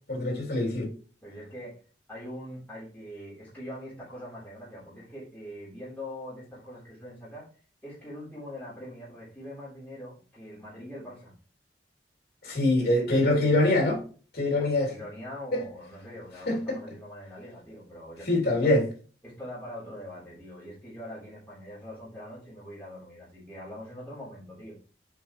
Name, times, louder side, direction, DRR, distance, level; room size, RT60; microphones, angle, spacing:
voice 1, 0.1-0.9 12.4-14.0 14.3-14.9 15.5-15.6 16.5-16.8 18.3-18.9, left 2 dB, 55° left, 3.0 m, -24 dB
voice 2, 1.2-1.8 2.1-7.5 7.8-11.3 12.7-13.8 14.5-18.8 19.2-24.8, equal, 10° left, 3.6 m, -43 dB
7.8 x 5.4 x 3.1 m
head